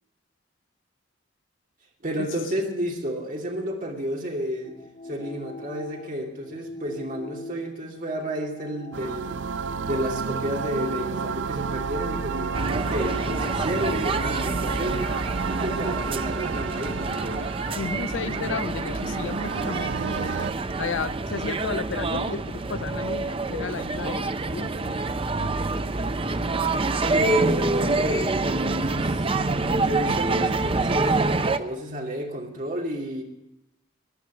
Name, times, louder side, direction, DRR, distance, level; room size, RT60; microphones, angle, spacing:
voice 1, 2.0-4.8 5.0-9.4 9.8-15.2 15.5-17.4 27.1-29.3 29.8-33.2, equal, 45° right, 0 dB, 2.8 m, -30 dB
sound 1, 4.6-10.0, left 1 dB, 40° left, 1.8 m, -43 dB
sound 2, 8.9-20.5, right 5 dB, 80° right, 0.5 m, -31 dB
sound 3, 12.5-31.6, right 3 dB, 30° right, 0.6 m, -27 dB
voice 2, 17.8-20.4 20.8-24.7, left 5 dB, 85° left, 17 dB, 0.5 m, -33 dB
15.0 x 10.5 x 7.6 m, 0.89 s
head